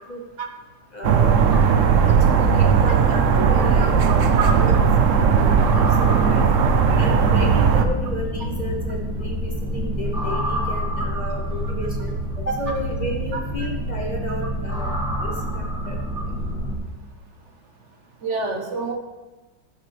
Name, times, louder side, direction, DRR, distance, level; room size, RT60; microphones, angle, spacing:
voice 1, 0.9-1.4 2.0-4.7 5.2-6.5 6.9-16.0, equal, 30° left, 0 dB, 0.8 m, -32 dB
sound 1, 1.0-7.8, right 6 dB, 70° right, 0.7 m, -17 dB
voice 2, 2.8-3.2 3.6-3.9 4.3-4.8 15.1-15.2 16.2-16.3 18.2-18.9, right 4 dB, 45° right, 2 dB, 1.2 m, -28 dB
sound 2, 3.6-16.8, equal, 5° right, 1.3 m, -27 dB
13.5 x 7.2 x 3.4 m, 1.2 s
omnidirectional pair, 2.1 m